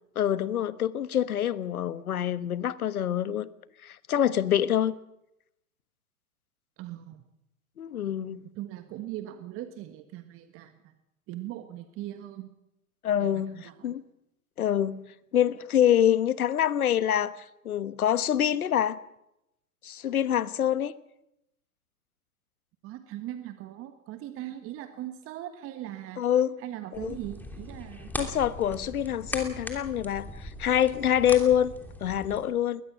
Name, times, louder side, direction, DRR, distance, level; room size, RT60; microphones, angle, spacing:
voice 1, 0.1-3.5 3.8-4.9 7.8-8.4 13.0-14.0 14.6-15.0 15.3-19.0 19.8-20.9 26.2-26.6 26.9-27.2 28.2-31.7 32.0-32.8, left 10 dB, 75° left, 1.2 m, -26 dB
voice 2, 6.8-7.2 8.5-10.9 11.3-12.5 13.2-13.9 22.8-26.2 26.6-28.1, right 13 dB, 30° right, 1.6 m, -40 dB
sound 1, 26.9-32.4, left 1 dB, 5° left, 3.0 m, -40 dB
21.0 x 20.5 x 6.1 m
hypercardioid pair, 115°, 44 cm